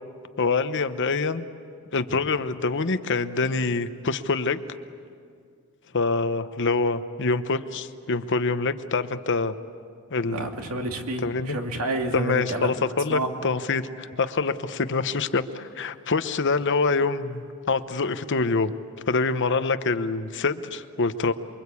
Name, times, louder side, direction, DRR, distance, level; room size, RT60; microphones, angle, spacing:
voice 1, 0.4-1.4 1.9-4.6 5.9-9.5 10.1-10.5 11.2-11.6 12.1-18.7 19.1-21.3, left 4 dB, 55° left, 11 dB, 0.9 m, -25 dB
voice 2, 10.2-12.7 13.1-13.4, right 2 dB, 80° right, 3 dB, 2.5 m, -29 dB
28.5 x 23.0 x 8.4 m, 2.2 s
head